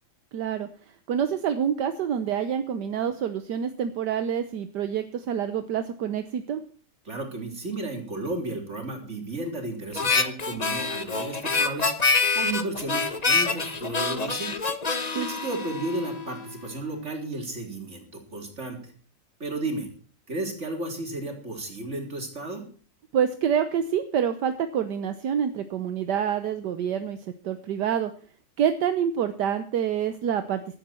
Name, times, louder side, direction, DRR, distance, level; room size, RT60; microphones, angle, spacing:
voice 1, 0.3-0.7 1.1-6.6 15.1-15.3 23.1-27.2 27.4-28.1 28.6-30.8, right 8 dB, 75° right, 9 dB, 1.5 m, -27 dB
voice 2, 7.0-14.6 15.1-18.9 19.4-19.9 20.3-22.6, right 2 dB, 40° right, 2 dB, 4.1 m, -33 dB
Harmonica, 9.9-16.4, left 4 dB, 25° left, 1.0 m, -26 dB
15.0 x 12.5 x 4.4 m, 0.42 s
omnidirectional pair, 1.9 m